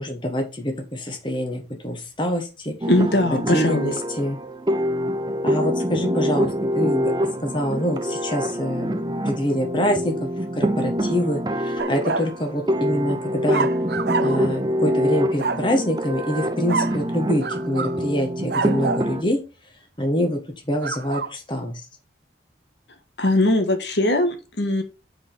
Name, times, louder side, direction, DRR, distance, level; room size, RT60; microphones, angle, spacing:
voice 1, 0.0-2.7 3.3-4.4 5.4-7.1 7.4-13.7 14.2-19.4 20.0-20.4 20.7-21.8, equal, 25° left, 3 dB, 1.5 m, -25 dB
sound 1, 2.8-19.2, equal, 25° right, 0.7 m, -25 dB
voice 2, 2.9-3.9 23.2-24.8, left 1 dB, 75° left, 6 dB, 1.5 m, -20 dB
sound 2, 11.8-12.3 13.5-14.5 15.4-15.7 16.7-17.0 17.4-18.0 18.5-19.1 20.8-21.3, right 5 dB, 65° right, 0.6 m, -27 dB
5.8 x 5.1 x 5.7 m, 0.29 s
head